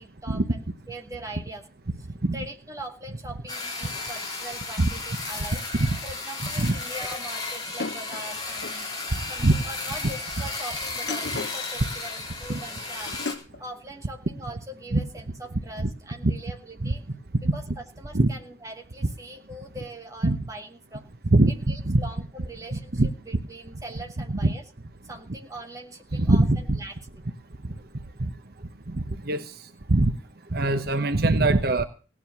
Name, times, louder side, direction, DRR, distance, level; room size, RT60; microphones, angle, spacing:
voice 1, 0.0-1.7 2.3-5.6 6.0-8.9 9.3-13.2 13.6-17.0 17.5-21.1 21.5-24.6 25.0-27.2, right 1 dB, 15° right, 2 dB, 2.4 m, -41 dB
sound 1, 3.5-13.3, left 3 dB, 20° left, 3.9 m, -34 dB
sound 2, 7.8-8.9 10.9-11.7 13.1-13.6, left 4 dB, 60° left, 0.7 m, -35 dB
voice 2, 9.1-9.5 12.5-12.6 14.9-15.0 15.8-15.9 16.2-16.3 16.8-16.9 17.4-17.5 18.1-18.3 20.2-20.4 21.3-22.0 22.7-23.1 24.3-24.5 26.1-26.8 28.2-28.3 28.9-29.0 29.3-29.5 29.9-30.1 30.5-31.8, right 2 dB, 55° right, 9 dB, 1.0 m, -22 dB
17.5 x 9.8 x 6.0 m, 0.37 s
head